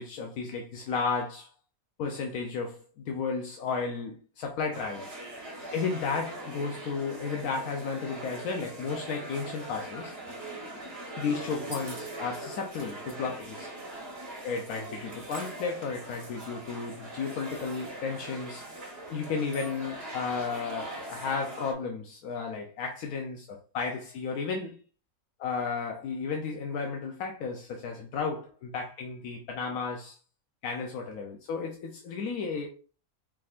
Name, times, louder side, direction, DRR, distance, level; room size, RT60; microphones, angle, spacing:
voice 1, 0.0-1.5 2.0-5.2 5.7-10.1 11.2-13.7 14.4-18.6 19.1-24.8 25.4-30.2 30.6-32.7, left 5 dB, 80° left, 1.2 m, -33 dB
sound 1, 4.7-21.7, right 1 dB, 45° right, 1.3 m, -41 dB
4.7 x 3.5 x 2.4 m
omnidirectional pair, 1.6 m